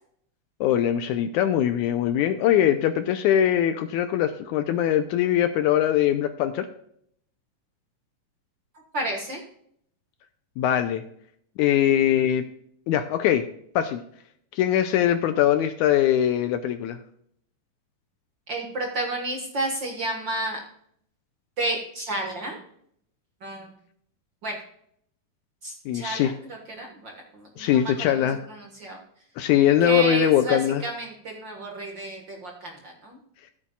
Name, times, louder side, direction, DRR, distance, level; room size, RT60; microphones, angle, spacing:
voice 1, 0.6-6.7 10.6-11.0 11.6-12.5 12.9-13.5 13.8-14.0 14.5-17.0 25.9-26.3 27.6-28.4 29.4-30.8, left 10 dB, 80° left, 9 dB, 1.9 m, -22 dB
voice 2, 8.9-9.4 18.5-20.6 21.6-22.6 23.4-23.7 24.4-24.6 25.6-29.0 29.8-33.2, right 2 dB, 45° right, 1 dB, 1.6 m, -31 dB
14.5 x 8.2 x 2.3 m, 0.67 s
omnidirectional pair, 3.8 m